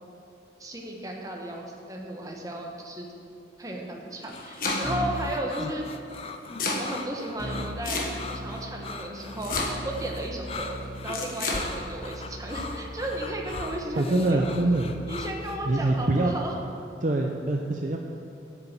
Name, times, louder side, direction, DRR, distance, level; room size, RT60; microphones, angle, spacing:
voice 1, 0.6-3.1 3.6-5.9 6.8-10.8 11.0-14.5 15.1-16.5, right 1 dB, 20° right, 0 dB, 1.1 m, -34 dB
Domestic sounds home sounds, 4.1-5.1 6.1-6.9 7.8-8.5 9.4-10.0 11.1-11.6, left 3 dB, 50° left, 1.4 m, -30 dB
sound 1, 4.3-15.6, left 3 dB, 35° left, 0.5 m, -39 dB
Keyboard (musical), 4.8-5.4 7.4-16.3, equal, 70° right, 2.3 m, -39 dB
voice 2, 13.9-14.9 15.7-16.3 17.0-18.0, right 2 dB, 45° right, 1 dB, 0.6 m, -24 dB
8.6 x 6.8 x 7.4 m, 2.6 s
head